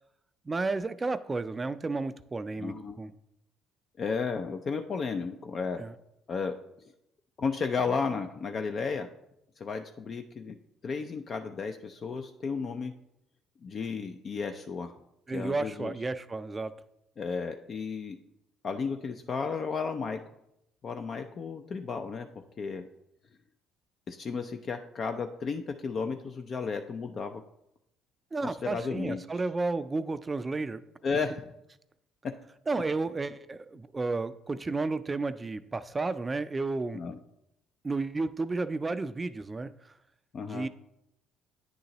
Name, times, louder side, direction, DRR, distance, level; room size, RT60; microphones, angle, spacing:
voice 1, 0.5-3.1 5.8-5.9 15.3-16.7 28.3-30.8 32.7-37.0 37.8-39.9 40.5-40.7, right 3 dB, 25° right, 12 dB, 0.3 m, -32 dB
voice 2, 2.6-3.0 4.0-5.8 6.3-6.6 7.4-9.1 9.6-10.6 10.8-12.9 13.6-14.9 15.3-15.9 17.2-18.2 18.6-20.2 20.8-22.3 22.6-22.9 24.1-27.4 28.4-29.2 31.0-31.5 32.2-32.4 36.9-37.2 40.3-40.7, left 5 dB, 50° left, 7 dB, 0.4 m, -33 dB
9.3 x 3.8 x 2.9 m, 0.83 s
supercardioid pair, 65°, 0 cm